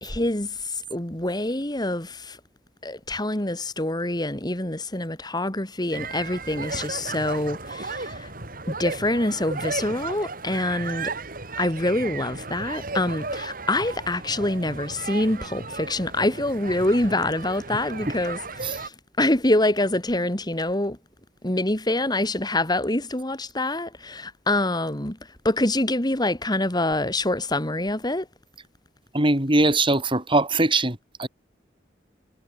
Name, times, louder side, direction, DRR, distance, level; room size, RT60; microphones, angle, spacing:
voice 1, 0.0-2.4 2.8-8.3 8.7-11.1 11.6-21.0 21.4-28.3, left 1 dB, 25° left, 3.0 m, -25 dB
sound 1, 5.9-18.9, right 3 dB, 55° right, 7.0 m, -35 dB
voice 2, 29.1-31.3, right 2 dB, 30° right, 5.1 m, -21 dB
head